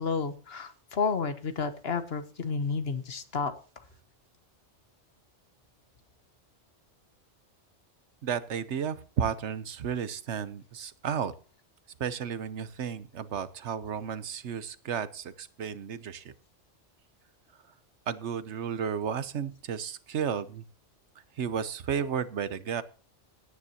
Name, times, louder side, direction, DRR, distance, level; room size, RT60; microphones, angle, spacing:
voice 1, 0.0-3.5, left 5 dB, 60° left, 11 dB, 1.3 m, -31 dB
voice 2, 8.2-11.3 12.0-16.3 18.1-20.6 21.4-22.8, right 7 dB, 75° right, 14 dB, 1.1 m, -33 dB
17.5 x 9.6 x 2.9 m, 0.38 s
omnidirectional pair, 1.2 m